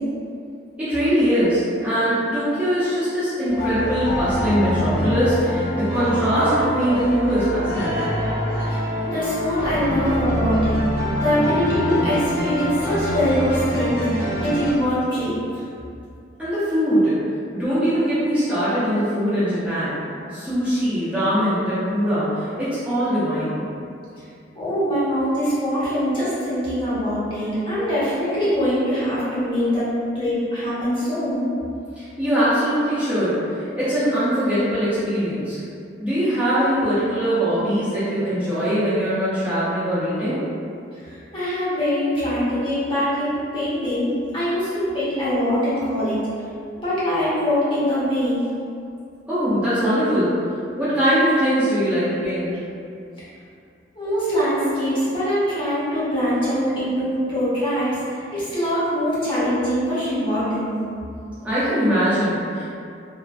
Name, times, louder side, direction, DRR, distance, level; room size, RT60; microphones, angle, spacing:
voice 1, 0.8-8.1 16.4-17.1 17.5-20.0 20.3-23.6 32.0-35.6 36.0-40.4 49.3-50.3 50.8-52.5 61.4-62.6, equal, 5° right, -14 dB, 0.6 m, -21 dB
sound 1, 3.5-14.7, equal, 70° left, 0.8 m, -25 dB
voice 2, 8.7-10.8 11.2-15.6 24.5-29.9 30.1-31.5 40.9-46.2 46.8-48.4 53.9-60.7, equal, 30° left, -12 dB, 0.9 m, -23 dB
3.2 x 2.1 x 2.4 m, 2.4 s
head